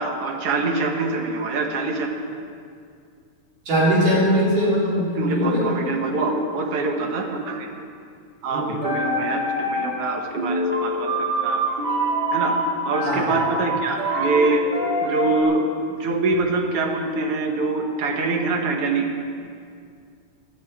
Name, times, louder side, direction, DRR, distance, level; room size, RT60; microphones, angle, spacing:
voice 1, 0.0-2.1 5.2-7.7 8.4-11.6 12.3-12.5 12.9-14.7 15.0-15.7 16.0-19.1, right 3 dB, 55° right, 3 dB, 2.0 m, -24 dB
voice 2, 3.7-5.7 8.5-8.8 13.0-13.3, equal, 85° right, -6 dB, 5.1 m, -21 dB
sound 1, 8.7-10.1 10.3-15.4, right 1 dB, 15° right, 2.0 m, -25 dB
15.5 x 12.5 x 4.9 m, 2.3 s
omnidirectional pair, 3.5 m